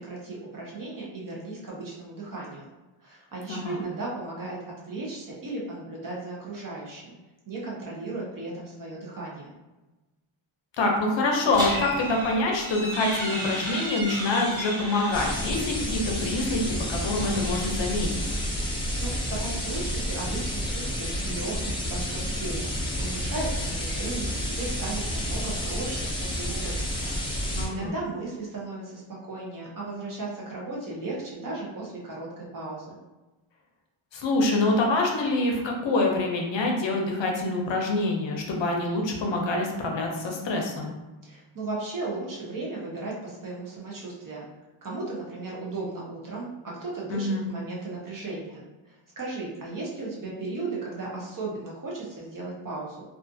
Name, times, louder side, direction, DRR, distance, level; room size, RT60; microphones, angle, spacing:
voice 1, 0.0-2.7 3.0-4.6 4.9-7.1 7.5-9.5 18.7-27.1 27.7-29.0 29.3-33.0 41.2-44.5 44.8-53.0, right 2 dB, 45° right, -4 dB, 0.6 m, -36 dB
voice 2, 10.8-18.1 27.5-27.9 34.1-40.9 47.1-47.4, left 2 dB, 65° left, 0 dB, 0.6 m, -26 dB
sound 1, 11.5-15.6 16.9-18.1, equal, 10° right, 0.9 m, -34 dB
sound 2, 15.1-27.7, equal, 10° left, 0.4 m, -30 dB
2.4 x 2.4 x 2.5 m, 1.1 s
wide cardioid pair, 180°, 48 cm